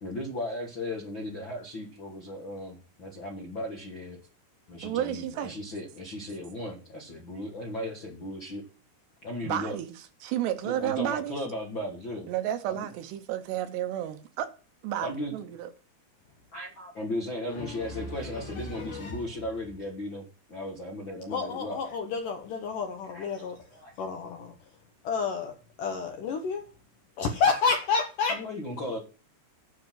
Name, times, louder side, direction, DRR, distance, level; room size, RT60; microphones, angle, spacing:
voice 1, 0.0-4.2 4.7-8.6 9.2-9.8 10.6-12.3 12.7-12.9 15.0-15.3 16.5-21.8 23.1-23.9 28.3-29.0, left 1 dB, 55° left, 1.3 m, -36 dB
voice 2, 4.8-5.6 9.4-9.9 10.2-11.3 12.3-14.5 14.8-15.7, right 12 dB, 75° right, 2.8 m, -31 dB
voice 3, 17.5-19.2 21.3-24.6 25.0-26.6 27.2-28.4, left 5 dB, 75° left, 2.0 m, -30 dB
9.4 x 5.8 x 7.6 m
omnidirectional pair, 5.2 m